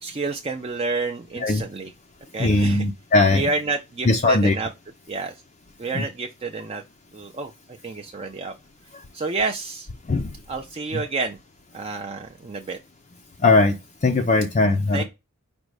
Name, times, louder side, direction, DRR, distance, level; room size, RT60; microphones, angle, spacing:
voice 1, 0.0-1.9 2.3-2.9 3.3-4.7 5.1-5.4 5.8-6.8 7.1-8.5 9.1-9.9 10.5-11.4 11.7-12.8 14.9-15.0, right 3 dB, 25° right, 0.4 m, -29 dB
voice 2, 2.4-3.4 4.1-4.5 5.9-6.0 10.1-10.3 10.9-11.0 13.4-13.8 14.0-15.0, left 3 dB, 35° left, 0.4 m, -19 dB
5.1 x 2.2 x 4.7 m
head